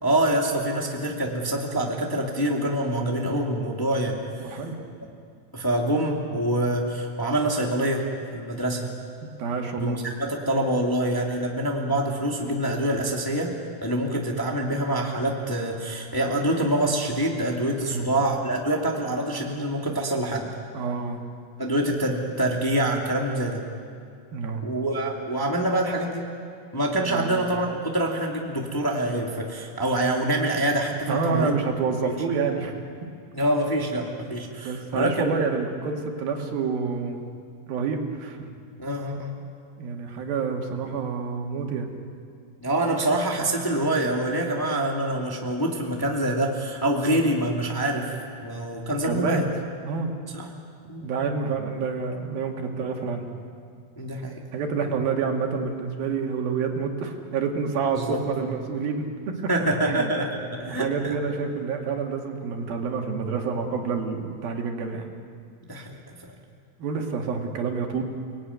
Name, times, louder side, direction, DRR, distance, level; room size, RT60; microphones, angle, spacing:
voice 1, 0.0-4.2 4.5-4.6 5.5-8.9 9.8-13.5 13.8-20.5 21.6-23.6 24.6-26.3 26.7-31.5 32.0-32.1 33.3-35.4 38.8-39.3 42.6-48.2 48.4-49.4 50.3-50.5 50.9-51.0 54.0-54.4 58.0-58.2 59.5-61.2 65.7-66.3, right 1 dB, 10° left, 0 dB, 1.8 m, -26 dB
voice 2, 4.4-4.8 9.2-10.0 17.9-18.1 20.7-21.2 24.3-24.6 27.1-27.4 31.1-32.8 34.6-37.2 37.7-38.5 39.8-41.9 49.0-49.4 49.8-50.1 51.0-53.3 54.5-59.4 59.8-60.1 60.7-65.1 66.8-68.0, right 5 dB, 85° right, 2 dB, 3.9 m, -28 dB
30.0 x 19.5 x 9.5 m, 2.3 s
omnidirectional pair, 4.1 m